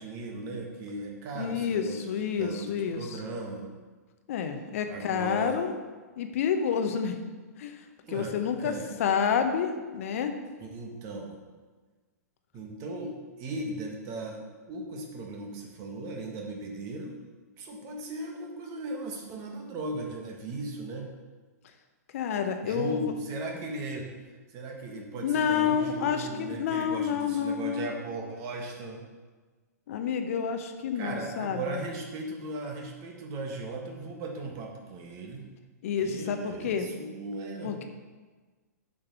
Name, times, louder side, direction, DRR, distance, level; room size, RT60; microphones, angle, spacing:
voice 1, 0.0-3.7 4.9-5.7 8.0-8.9 10.6-11.4 12.5-14.4 14.7-17.2 17.6-21.1 22.6-24.1 24.5-29.0 30.9-35.4 36.0-37.8, right 2 dB, 35° right, 1 dB, 1.6 m, -37 dB
voice 2, 1.3-3.2 4.3-5.7 6.2-7.2 7.6-8.7 9.0-10.3 22.1-23.1 25.2-27.9 29.9-31.8 35.8-36.9 37.6-37.8, left 7 dB, 55° left, 7 dB, 0.8 m, -29 dB
7.2 x 5.2 x 5.7 m, 1.4 s
figure-of-eight pair, 110°, 9 cm